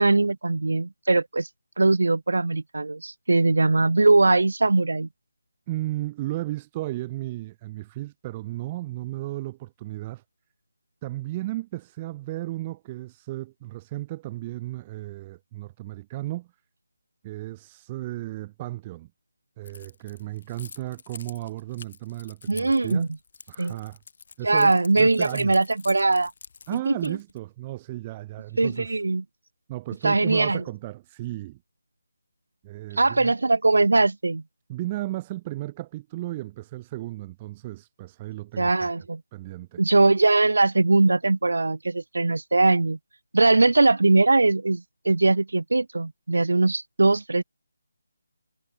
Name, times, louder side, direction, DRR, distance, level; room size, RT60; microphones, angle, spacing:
voice 1, 0.0-1.5 1.8-5.1 22.5-23.1 23.6-23.8 24.4-26.3 26.7-27.2 28.6-29.2 30.0-30.6 33.0-34.4 38.6-39.2 39.8-43.0 43.3-47.4, right 3 dB, 75° right, 0.4 m, -21 dB
voice 2, 5.7-10.2 11.0-16.5 17.2-19.1 19.6-23.1 23.5-24.0 24.4-25.6 26.7-28.9 29.7-31.6 32.6-33.3 34.7-38.9 39.3-39.8, right 17 dB, 20° right, 1.2 m, -34 dB
Keys jangling, 19.7-27.4, left 5 dB, 50° left, 3.2 m, -46 dB
figure-of-eight pair, 160°, 0 cm